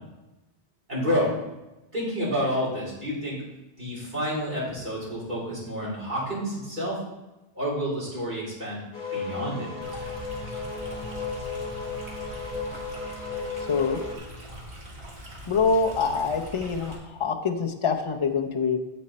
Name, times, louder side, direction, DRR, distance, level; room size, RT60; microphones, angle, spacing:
voice 1, 0.9-1.3 1.9-3.4 3.8-7.0 7.5-8.8 9.1-10.0, equal, 45° right, -8 dB, 4.3 m, -29 dB
sound 1, 8.9-14.2, left 4 dB, 45° left, 1.5 m, -34 dB
Stream, 9.8-16.9, equal, 85° right, 2.4 m, -42 dB
voice 2, 13.7-14.0 15.5-18.8, left 5 dB, 30° left, 4 dB, 0.7 m, -25 dB
8.7 x 7.9 x 4.3 m, 1.0 s
omnidirectional pair, 1.1 m